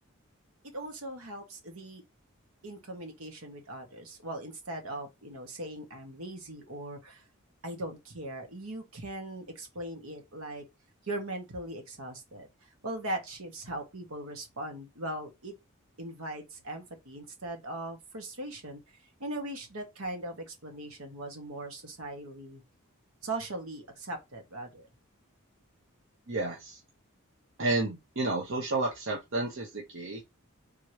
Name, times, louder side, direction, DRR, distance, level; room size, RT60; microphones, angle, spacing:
voice 1, 0.7-2.0 2.6-7.2 7.6-10.6 11.0-15.5 16.0-18.8 19.2-22.6 23.2-24.9, right 1 dB, 75° right, 1.3 m, -39 dB
voice 2, 26.3-26.8 27.6-30.2, right 2 dB, 60° right, 0.9 m, -31 dB
3.6 x 3.0 x 3.1 m
head